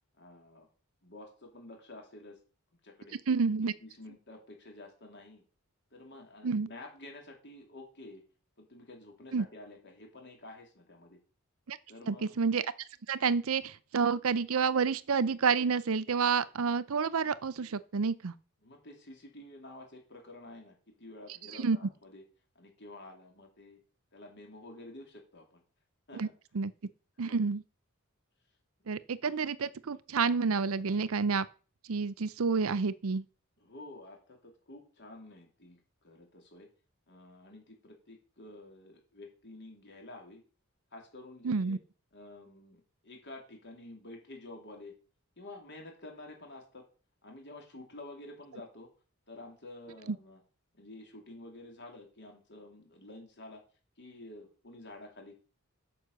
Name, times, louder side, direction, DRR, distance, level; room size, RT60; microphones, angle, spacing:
voice 1, 0.2-0.7 1.0-2.4 2.8-3.2 3.8-5.4 5.9-8.2 8.6-11.2 11.9-12.4 18.6-22.2 22.6-23.8 24.1-25.6 26.1-26.3 27.2-27.4 33.6-36.7 37.1-40.4 40.9-41.8 42.1-44.9 45.4-46.9 47.2-48.9 49.3-50.4 50.7-53.6 54.0-55.3, left 2 dB, 55° left, 3.3 m, -50 dB
voice 2, 3.3-3.7 6.4-6.7 9.3-9.5 11.7-11.8 12.1-12.6 13.1-18.3 21.5-21.8 26.1-26.3 26.5-26.7 27.2-27.6 28.9-31.5 31.9-33.2 41.4-41.8 50.1-50.2, right 5 dB, 70° right, 0.6 m, -29 dB
9.5 x 5.9 x 6.7 m
head